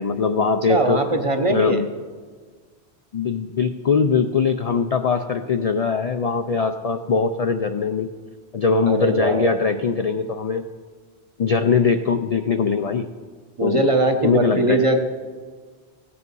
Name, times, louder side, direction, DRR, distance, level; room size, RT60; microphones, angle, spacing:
voice 1, 0.0-1.0 1.5-1.9 3.1-8.1 8.5-10.6 11.4-13.1 13.6-13.9 14.2-14.8, left 5 dB, 50° left, 7 dB, 0.4 m, -21 dB
voice 2, 0.7-1.8 8.9-9.5 13.6-15.0, right 2 dB, 30° right, 5 dB, 0.9 m, -20 dB
15.5 x 8.5 x 5.4 m, 1.5 s
omnidirectional pair, 1.1 m